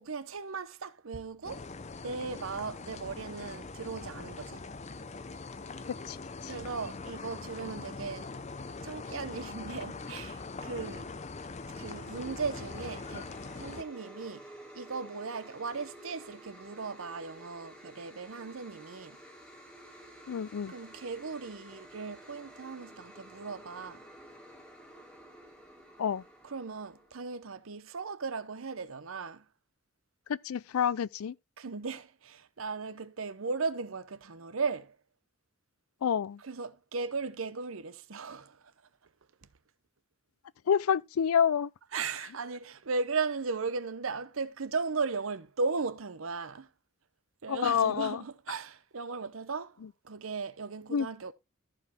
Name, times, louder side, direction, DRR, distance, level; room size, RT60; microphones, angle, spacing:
voice 1, 0.0-1.7 2.0-4.6 6.4-8.3 8.8-11.1 11.8-13.3 13.6-19.2 20.7-24.0 26.4-29.4 31.6-35.0 36.4-38.7 41.9-46.7 47.4-49.8 50.0-51.3, right 4 dB, 75° right, 0.8 m, -37 dB
sound 1, 1.4-13.8, left 3 dB, 30° left, 0.6 m, -42 dB
sound 2, 10.9-27.3, right 1 dB, 5° left, 1.8 m, -52 dB
voice 2, 20.3-20.7 26.0-26.2 30.3-31.3 36.0-36.4 40.7-41.7 47.5-48.2 50.9-51.1, left 7 dB, 90° left, 0.4 m, -28 dB
14.5 x 4.8 x 3.6 m
head